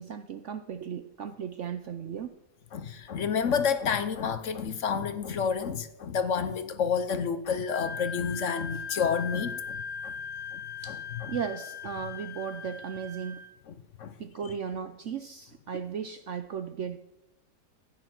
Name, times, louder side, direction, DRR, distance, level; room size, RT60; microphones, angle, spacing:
voice 1, 0.0-2.4 10.8-11.0 11.3-13.4 14.2-17.0, right 7 dB, 70° right, 0.7 m, -36 dB
voice 2, 2.7-10.1 10.5-10.6 11.2-11.3 14.0-14.1, left 6 dB, 55° left, 0.9 m, -29 dB
Wind instrument woodwind instrument, 7.7-13.5, left 6 dB, 85° left, 2.4 m, -39 dB
14.5 x 9.5 x 5.9 m
omnidirectional pair, 1.9 m